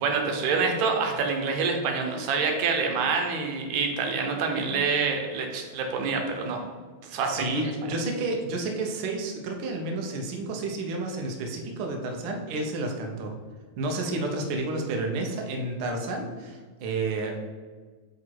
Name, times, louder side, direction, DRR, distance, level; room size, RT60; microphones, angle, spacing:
voice 1, 0.0-6.6 7.0-7.5 7.9-8.0, right 4 dB, 70° right, 3 dB, 2.0 m, -26 dB
voice 2, 7.3-13.3 13.8-17.5, right 2 dB, 90° right, 2 dB, 1.1 m, -30 dB
8.5 x 3.1 x 4.5 m, 1.4 s
omnidirectional pair, 3.6 m